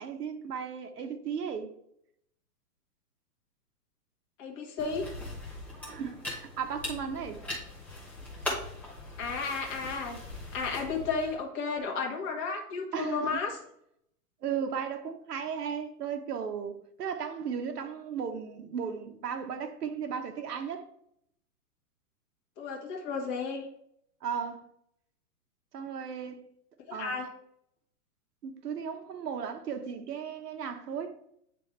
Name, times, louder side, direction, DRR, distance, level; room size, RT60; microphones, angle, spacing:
voice 1, 0.0-1.7 5.9-7.4 12.9-13.4 14.4-20.8 24.2-24.6 25.7-26.4 26.9-27.2 28.4-31.1, right 7 dB, 85° right, 1.2 m, -35 dB
voice 2, 4.4-5.1 9.2-10.2 10.5-13.6 22.6-23.7 26.9-27.3, left 4 dB, 25° left, 1.4 m, -33 dB
sound 1, 4.8-11.3, left 1 dB, 5° left, 1.1 m, -40 dB
9.0 x 3.5 x 3.3 m
hypercardioid pair, 150°, 46 cm